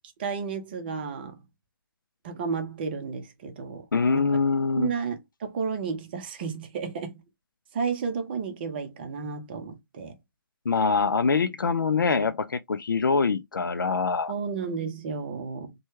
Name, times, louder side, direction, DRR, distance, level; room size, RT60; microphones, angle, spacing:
voice 1, 0.2-1.4 2.2-3.9 4.1-4.3 4.8-7.2 7.7-10.2 14.3-15.7, right 5 dB, 30° right, 0.6 m, -32 dB
voice 2, 3.9-4.9 10.7-14.3, left 4 dB, 65° left, 0.4 m, -24 dB
3.1 x 2.2 x 3.0 m
figure-of-eight pair, 140°, 12 cm